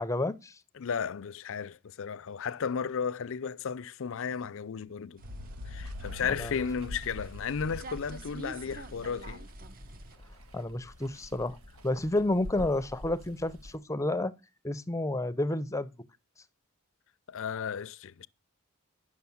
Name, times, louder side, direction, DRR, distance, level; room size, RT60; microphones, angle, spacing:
voice 1, 0.0-0.6 6.2-6.5 10.5-11.6 11.8-14.3 14.6-15.9, left 2 dB, 15° left, 0.5 m, -30 dB
voice 2, 0.8-5.2 5.7-9.5 17.3-18.3, left 6 dB, 60° left, 0.5 m, -34 dB
sound 1, 5.2-10.2, right 3 dB, 40° right, 0.8 m, -49 dB
sound 2, 5.2-9.0, left 1 dB, 90° right, 1.0 m, -44 dB
Water, 5.8-13.8, left 1 dB, 70° right, 1.6 m, -46 dB
10.5 x 6.4 x 7.0 m
head